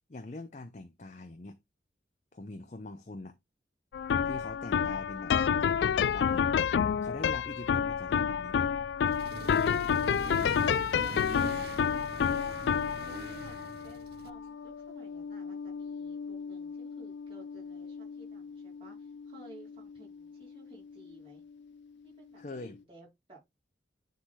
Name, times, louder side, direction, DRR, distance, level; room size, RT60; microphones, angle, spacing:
voice 1, 0.1-1.6 2.3-3.3 4.2-5.3 5.6-6.5 7.0-8.7 22.4-22.8, left 2 dB, 40° left, 0.6 m, -43 dB
sound 1, 3.9-21.1, left 7 dB, 75° left, 0.3 m, -31 dB
Accelerating revving vroom, 9.1-14.3, right 3 dB, 60° right, 0.5 m, -43 dB
voice 2, 11.0-12.7 13.0-21.4 22.0-23.4, right 2 dB, 30° right, 4.1 m, -55 dB
9.8 x 3.9 x 3.2 m
head